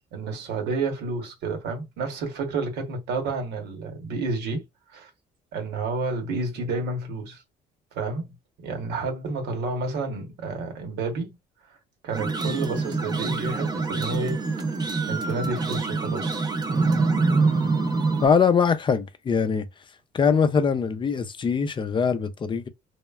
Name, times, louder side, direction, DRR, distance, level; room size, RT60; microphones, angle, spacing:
voice 1, 0.1-4.6 4.9-5.1 5.5-7.4 7.9-8.3 8.6-11.3 12.0-14.4 15.1-16.4, right 3 dB, 85° right, 1.0 m, -30 dB
sound 1, 12.1-18.3, right 3 dB, 25° right, 0.5 m, -25 dB
voice 2, 18.2-19.7 20.1-22.7, left 6 dB, 30° left, 0.4 m, -22 dB
3.1 x 2.0 x 2.3 m
cardioid pair, 110°, 17 cm